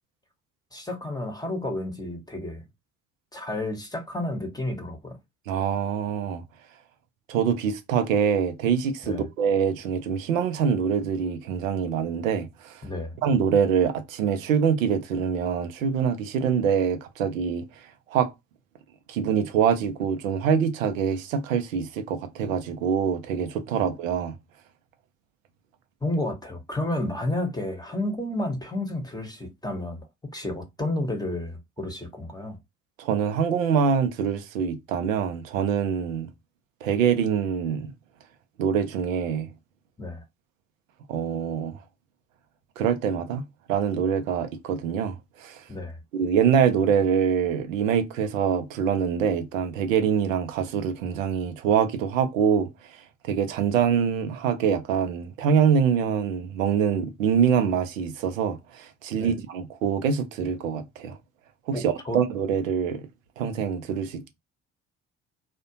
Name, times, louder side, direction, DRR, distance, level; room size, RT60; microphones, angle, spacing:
voice 1, 0.7-2.6 3.3-5.2 9.0-9.3 12.8-13.2 23.8-23.9 26.0-30.1 30.3-32.6 40.0-40.2 45.7-46.0 59.1-59.3 61.7-62.2, left 1 dB, 10° left, 0.8 m, -31 dB
voice 2, 5.5-6.4 7.3-12.8 13.2-17.7 18.1-18.3 19.1-24.3 33.0-36.3 36.8-37.9 38.6-39.5 41.1-41.8 42.8-43.4 43.7-45.6 46.1-52.7 53.2-61.2 61.7-63.1 63.4-64.3, right 7 dB, 85° right, 0.5 m, -24 dB
2.4 x 2.1 x 2.7 m
hypercardioid pair, 45°, 38 cm